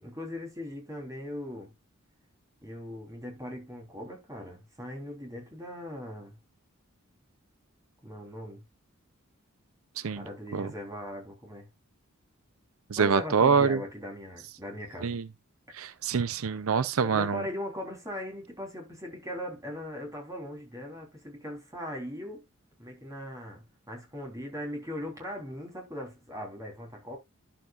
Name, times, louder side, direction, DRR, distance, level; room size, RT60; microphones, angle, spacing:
voice 1, 0.0-1.7 2.6-6.4 8.0-8.6 10.1-11.7 13.0-15.2 17.0-22.4 22.8-27.2, left 1 dB, 15° right, 3.4 m, -39 dB
voice 2, 12.9-13.8 15.0-15.2 15.7-17.4, right 5 dB, 80° right, 0.5 m, -25 dB
11.0 x 7.3 x 2.4 m
head